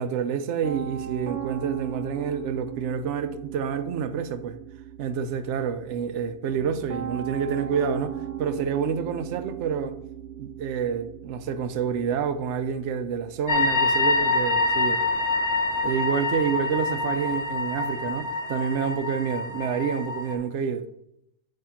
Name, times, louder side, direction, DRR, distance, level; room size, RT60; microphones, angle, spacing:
voice 1, 0.0-4.6 5.0-9.9 10.4-15.0 15.8-20.9, right 7 dB, 70° right, 0.9 m, -28 dB
Piano, 0.6-17.7, right 10 dB, 55° right, 0.5 m, -39 dB
sound 1, 13.5-20.3, left 3 dB, 60° left, 1.2 m, -26 dB
8.8 x 3.2 x 5.7 m
omnidirectional pair, 1.3 m